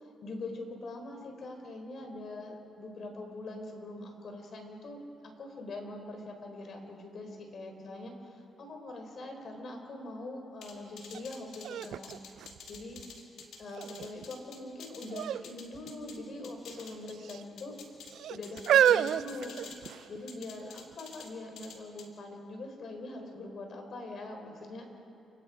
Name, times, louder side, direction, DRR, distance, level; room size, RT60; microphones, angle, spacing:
voice 1, 0.0-5.0 5.4-12.1 12.7-13.0 13.6-17.8 18.3-24.9, left 2 dB, 55° left, 4 dB, 3.9 m, -43 dB
sound 1, 10.6-16.2 16.4-18.1 18.4-19.9 20.3-21.3 21.6-22.1, left 6 dB, 75° left, 2.5 m, -49 dB
sound 2, 11.1-11.2 11.6-13.2 13.8-14.3 15.1-15.5 15.7-15.9 16.8-17.4 18.1-20.2 20.9-21.0, right 10 dB, 75° right, 0.4 m, -29 dB
29.0 x 18.5 x 4.9 m, 2.9 s
cardioid pair, 90°, 0 cm